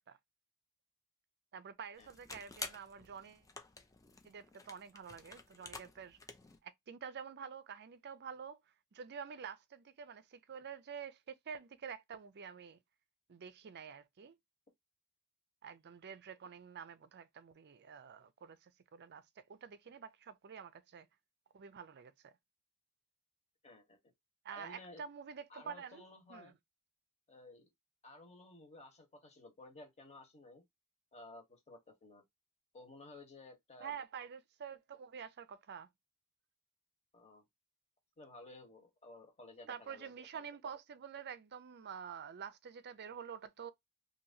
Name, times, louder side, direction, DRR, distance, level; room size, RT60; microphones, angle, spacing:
voice 1, 1.5-3.4 4.2-6.2 6.6-8.6 8.9-12.8 13.3-14.4 15.6-21.1 21.5-22.3 24.4-26.0 26.3-26.6 33.8-35.9 39.7-43.7, right 7 dB, 50° right, 0.5 m, -48 dB
sound 1, 1.9-6.6, left 4 dB, 15° left, 0.5 m, -50 dB
voice 2, 23.6-24.0 24.5-25.0 25.5-26.5 27.3-27.7 28.0-30.6 31.1-32.2 32.7-34.0 37.1-37.4 38.2-40.1, left 2 dB, 30° left, 1.3 m, -55 dB
2.9 x 2.7 x 2.6 m
head